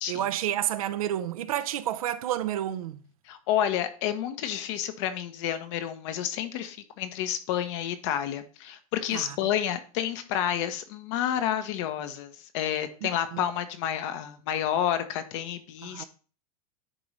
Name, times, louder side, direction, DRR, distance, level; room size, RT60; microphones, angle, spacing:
voice 1, 0.1-3.0 9.1-9.4 13.0-13.5 15.8-16.1, right 12 dB, 75° right, 0.7 m, -30 dB
voice 2, 3.3-16.1, left 10 dB, 55° left, 1.0 m, -30 dB
10.0 x 3.9 x 3.2 m
hypercardioid pair, 125°, 19 cm